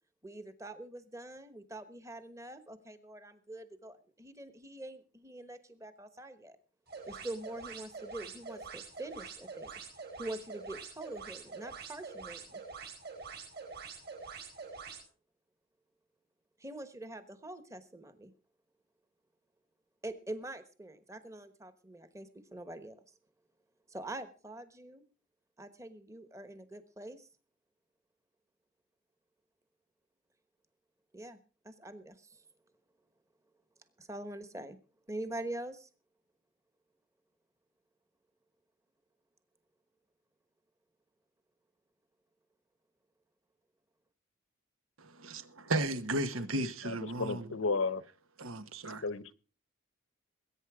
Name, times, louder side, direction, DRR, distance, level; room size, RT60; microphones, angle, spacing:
voice 1, 0.2-6.6 7.1-12.6 16.6-18.3 20.0-23.0 23.9-25.0 25.6-27.3 31.1-31.4 31.6-32.4 34.0-34.8 35.1-35.9, right 1 dB, 15° right, 1.1 m, -44 dB
sound 1, 6.9-15.0, right 5 dB, 50° right, 4.8 m, -46 dB
voice 2, 45.3-47.5 48.4-49.0, right 1 dB, 90° right, 1.3 m, -34 dB
voice 3, 46.6-48.0 49.0-49.3, left 4 dB, 75° left, 0.8 m, -34 dB
20.5 x 9.1 x 4.9 m
head